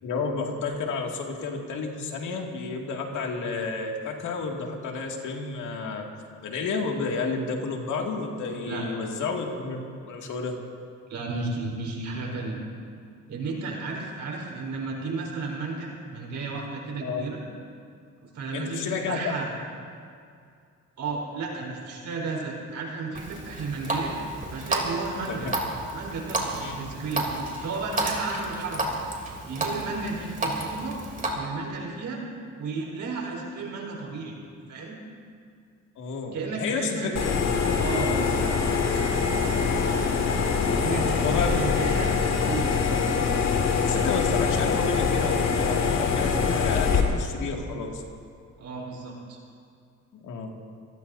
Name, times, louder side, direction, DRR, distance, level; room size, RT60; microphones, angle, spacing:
voice 1, 0.0-6.1 6.4-10.6 17.0-17.2 18.5-19.2 25.3-25.5 26.6-26.7 36.0-37.1 41.1-41.6 43.8-48.0 50.2-50.5, left 4 dB, 75° left, 0 dB, 2.5 m, -31 dB
voice 2, 11.1-12.6 13.3-17.4 18.2-19.5 21.0-24.1 24.5-25.5 25.9-27.3 27.6-29.0 29.4-30.9 31.3-32.2 32.6-34.4 34.7-35.0 36.3-37.4 37.8-38.7 40.7-42.2 42.4-42.7 48.6-49.4, right 3 dB, 70° right, -1 dB, 4.5 m, -33 dB
Water tap faucet, 23.1-31.3, right 2 dB, 25° right, 3.4 m, -31 dB
sound 1, 37.2-47.0, left 5 dB, 60° left, 2.2 m, -24 dB
27.5 x 19.0 x 2.8 m, 2.3 s
cardioid pair, 90°, 30 cm